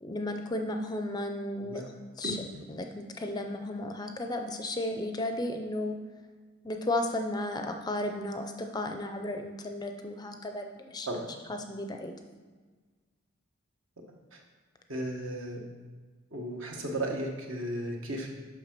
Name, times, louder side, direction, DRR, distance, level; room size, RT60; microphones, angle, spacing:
voice 1, 0.0-1.8 2.2-2.4 2.7-6.0 6.6-11.1 11.5-12.1, left 1 dB, 20° left, 5 dB, 0.5 m, -34 dB
voice 2, 1.6-1.9 2.2-2.6 11.1-11.2 14.3-14.4 14.9-15.6 16.3-18.3, right 1 dB, 65° right, 1 dB, 1.4 m, -35 dB
7.1 x 5.6 x 5.9 m, 1.4 s
head